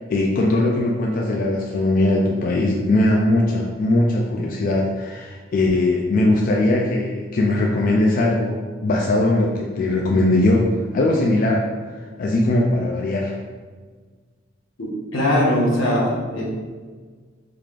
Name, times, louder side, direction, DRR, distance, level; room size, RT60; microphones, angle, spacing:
voice 1, 0.1-10.7 10.9-11.6 12.2-13.4, left 2 dB, 45° left, -1 dB, 0.3 m, -20 dB
voice 2, 14.8-16.4, left 1 dB, 85° left, -4 dB, 1.0 m, -21 dB
3.7 x 3.2 x 2.4 m, 1.5 s
head